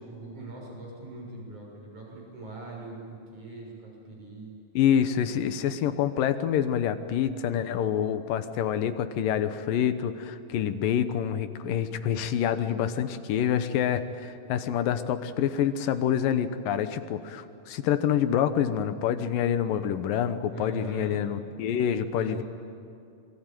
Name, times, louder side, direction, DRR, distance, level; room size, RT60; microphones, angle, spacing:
voice 1, 0.0-4.5 20.5-21.2 22.2-22.4, right 3 dB, 60° right, -1 dB, 8.3 m, -41 dB
voice 2, 4.8-22.4, left 9 dB, 80° left, 10 dB, 2.7 m, -27 dB
26.5 x 22.5 x 9.2 m, 2.5 s
omnidirectional pair, 3.9 m